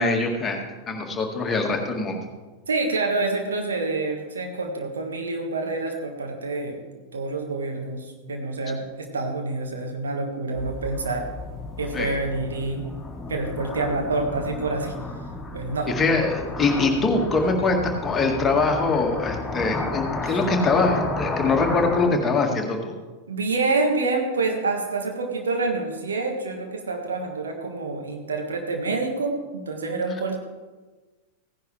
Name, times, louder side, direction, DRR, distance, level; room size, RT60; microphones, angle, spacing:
voice 1, 0.0-2.2 11.9-12.2 16.0-22.9, left 3 dB, 20° left, 2 dB, 1.8 m, -23 dB
voice 2, 2.7-11.3 11.8-12.8 13.3-15.0 15.5-15.9 20.2-20.4 23.3-30.4, right 3 dB, 70° right, 3 dB, 1.7 m, -27 dB
sound 1, 10.5-22.1, left 2 dB, ahead, 3.8 m, -32 dB
16.0 x 10.5 x 3.3 m, 1.3 s
figure-of-eight pair, 90°, 0 cm